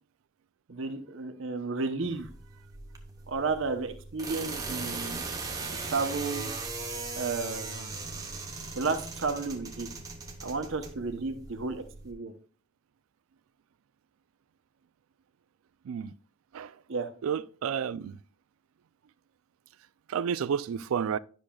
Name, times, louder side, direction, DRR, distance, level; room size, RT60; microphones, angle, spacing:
voice 1, 0.7-2.3 3.3-5.2 5.6-6.5 7.2-7.9 8.7-9.9 10.4-12.3 16.9-17.1, right 4 dB, 70° right, 0.8 m, -32 dB
sound 1, 2.0-12.1, right 3 dB, 15° right, 0.9 m, -39 dB
voice 2, 17.2-18.2 20.1-21.2, right 7 dB, 85° right, 0.3 m, -31 dB
10.5 x 6.2 x 2.3 m
head